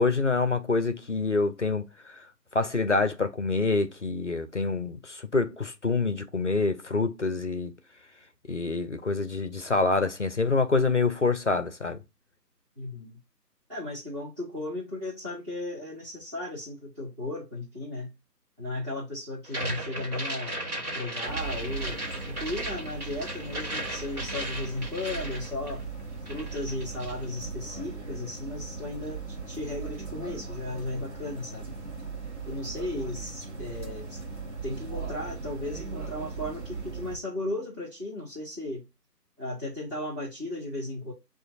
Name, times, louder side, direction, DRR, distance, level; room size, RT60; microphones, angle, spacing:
voice 1, 0.0-2.2 2.5-7.7 8.5-12.0, left 3 dB, 50° left, 0.4 m, -26 dB
voice 2, 12.8-13.2 13.7-18.1 18.6-25.8 26.3-31.7 32.4-34.2 34.6-38.8 39.4-41.1, left 2 dB, 15° right, 1.0 m, -35 dB
sound 1, 19.4-26.0 26.3-27.2, right 1 dB, 60° right, 1.6 m, -36 dB
sound 2, 21.3-37.2, right 4 dB, 45° right, 1.0 m, -38 dB
7.5 x 2.5 x 2.4 m
figure-of-eight pair, 160°, 49 cm